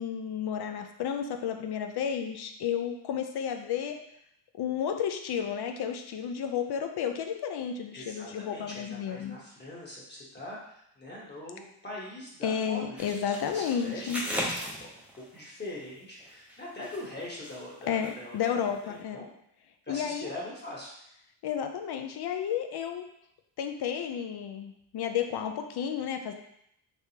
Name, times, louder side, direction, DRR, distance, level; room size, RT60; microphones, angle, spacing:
voice 1, 0.0-4.0 4.5-9.4 12.4-14.2 17.9-19.3 19.9-20.3 21.4-23.0 23.6-26.3, left 8 dB, 55° left, 6 dB, 0.5 m, -32 dB
voice 2, 7.9-14.4 14.7-15.0 15.3-19.3 19.8-20.9, left 1 dB, 20° left, -5 dB, 1.0 m, -42 dB
sound 1, 13.0-15.4 16.2-17.6 17.9-18.1 18.4-18.5, equal, 5° right, 0.7 m, -37 dB
3.4 x 3.3 x 2.8 m, 0.74 s
cardioid pair, 95°, 46 cm